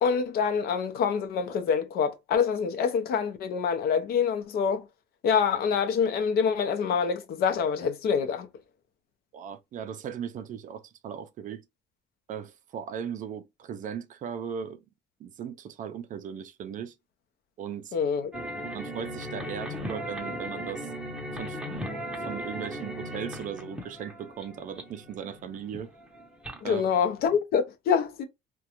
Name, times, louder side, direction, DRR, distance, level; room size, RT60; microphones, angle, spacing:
voice 1, 0.0-4.9 5.2-8.5 17.9-18.3 26.6-28.3, left 6 dB, 65° left, 0.6 m, -26 dB
voice 2, 9.3-11.6 12.3-14.8 15.2-17.0 17.6-18.0 18.7-20.9 21.3-25.9 26.6-26.8, right 8 dB, 50° right, 0.4 m, -38 dB
sound 1, 18.3-27.3, equal, 5° right, 0.7 m, -38 dB
2.4 x 2.2 x 2.8 m
cardioid pair, 110°, 17 cm